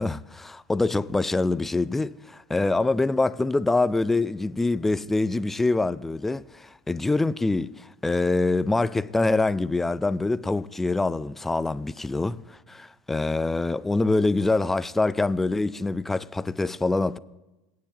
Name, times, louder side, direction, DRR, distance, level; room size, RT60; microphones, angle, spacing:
voice 1, 0.0-17.2, left 2 dB, 10° left, 0.4 m, -25 dB
18.5 x 9.4 x 2.9 m
hypercardioid pair, 85°, 2 cm